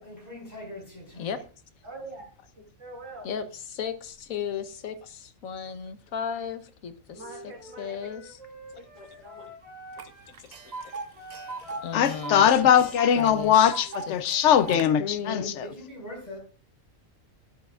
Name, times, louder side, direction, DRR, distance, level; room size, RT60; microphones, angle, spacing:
voice 1, 0.0-1.3 15.2-16.4, left 1 dB, 30° left, 5.1 m, -42 dB
voice 2, 1.8-2.3 2.8-3.3 7.1-8.1 8.8-9.5 12.0-12.2 12.5-12.6, right 2 dB, 70° right, 3.1 m, -44 dB
voice 3, 3.2-7.2 7.8-8.4 10.6-10.7 11.8-12.5 13.2-13.6 14.1-14.3 14.7-15.5, left 7 dB, 85° left, 1.3 m, -35 dB
Wind instrument woodwind instrument, 7.1-10.3 10.7-14.1, equal, 25° right, 5.0 m, -47 dB
Tick, 10.0-10.1 10.3-14.9, right 4 dB, 50° right, 0.5 m, -38 dB
voice 4, 11.9-15.6, left 9 dB, 65° left, 0.9 m, -21 dB
12.5 x 10.0 x 2.4 m
omnidirectional pair, 1.4 m